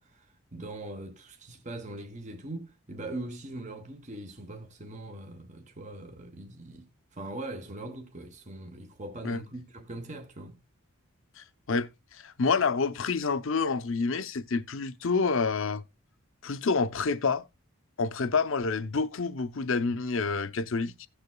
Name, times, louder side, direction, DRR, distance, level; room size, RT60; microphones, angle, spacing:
voice 1, 0.0-10.6, right 2 dB, 30° right, 1.0 m, -41 dB
voice 2, 11.4-15.8 16.4-17.4 18.0-21.1, left 4 dB, 60° left, 0.7 m, -28 dB
16.5 x 6.8 x 2.2 m
head